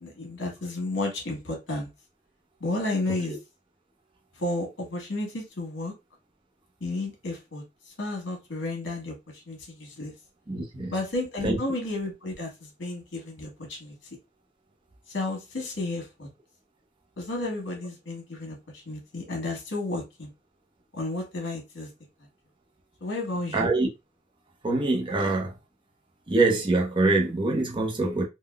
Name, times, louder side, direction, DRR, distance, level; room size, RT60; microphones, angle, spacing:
voice 1, 0.0-1.9 2.6-3.4 4.4-5.9 6.8-7.6 8.0-10.1 10.9-13.9 15.1-16.3 17.2-18.6 18.8-20.3 20.9-21.9 23.0-23.6, left 2 dB, 65° left, 1.3 m, -32 dB
voice 2, 10.5-10.9 11.4-11.6 23.5-23.9 24.6-25.5 26.3-28.3, right 2 dB, 25° right, 0.6 m, -24 dB
3.7 x 2.1 x 2.2 m
head